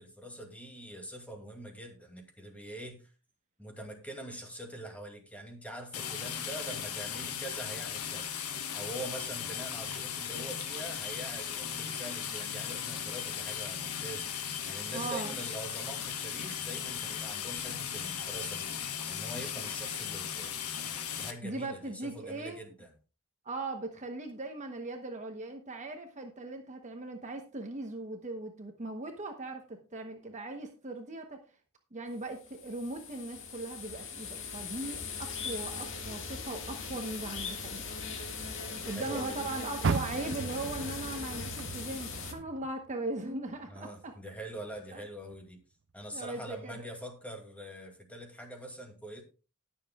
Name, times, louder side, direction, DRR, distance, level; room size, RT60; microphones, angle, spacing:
voice 1, 0.0-3.0 3.6-8.3 8.7-20.6 21.1-22.9 38.5-39.4 43.7-45.6 45.9-49.2, right 1 dB, 5° left, 3 dB, 2.5 m, -44 dB
sound 1, 5.9-21.3, left 8 dB, 75° left, 1.4 m, -37 dB
voice 2, 14.9-15.4 21.4-22.6 23.4-31.4 31.9-37.8 38.8-44.1 44.9-45.0 46.1-46.9, right 2 dB, 35° right, 4 dB, 1.0 m, -39 dB
sound 2, 32.3-42.3, left 5 dB, 60° left, 2.0 m, -40 dB
Car, 39.8-43.1 43.5-44.8 45.3-45.4 46.0-46.1, right 4 dB, 55° right, 0.5 m, -36 dB
19.5 x 7.2 x 2.4 m, 0.34 s
head